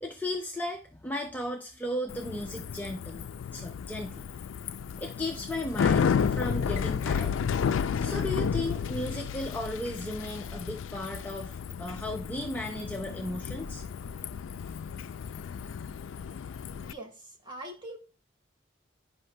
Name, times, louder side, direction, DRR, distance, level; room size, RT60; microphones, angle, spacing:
voice 1, 0.0-3.3 3.5-4.2 5.0-7.3 8.0-13.8, left 1 dB, 10° left, 1 dB, 0.5 m, -35 dB
Bicycle, 2.1-16.9, left 6 dB, 85° left, 0.4 m, -32 dB
voice 2, 16.8-18.0, right 1 dB, 25° right, 0 dB, 1.4 m, -43 dB
9.4 x 5.6 x 2.2 m, 0.34 s
head